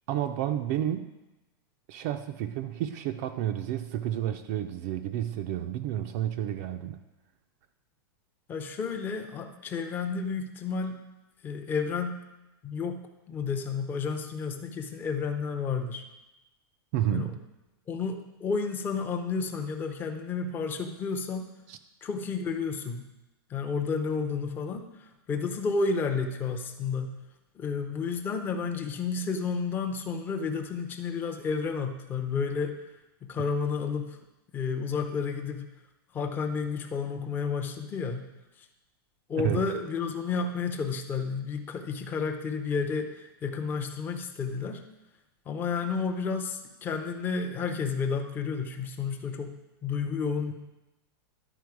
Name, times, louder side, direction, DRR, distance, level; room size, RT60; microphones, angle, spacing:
voice 1, 0.1-1.1 1.9-7.0 16.9-17.4 21.7-21.8 39.4-39.6, right 11 dB, 40° right, 7 dB, 0.4 m, -30 dB
voice 2, 8.5-11.0 11.4-12.2 12.6-16.0 17.1-17.3 17.9-21.5 22.0-23.1 23.5-27.2 27.5-32.8 33.2-34.2 34.5-35.7 36.1-38.3 39.3-44.8 45.5-49.6 49.8-50.5, left 5 dB, 15° left, 4 dB, 0.5 m, -31 dB
11.0 x 4.4 x 4.7 m, 1.0 s
supercardioid pair, 160°, 13 cm